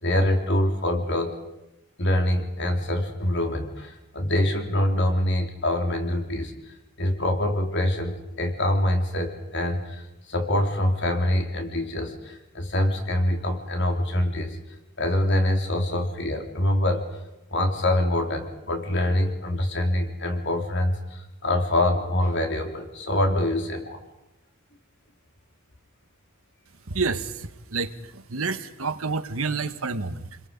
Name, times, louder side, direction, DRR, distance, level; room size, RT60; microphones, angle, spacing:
voice 1, 0.0-1.4 2.0-14.6 15.0-17.2 17.5-24.0, left 1 dB, 55° left, 4 dB, 3.5 m, -25 dB
voice 2, 26.9-30.4, right 4 dB, 75° right, 10 dB, 1.5 m, -29 dB
30.0 x 22.0 x 5.4 m, 0.91 s
head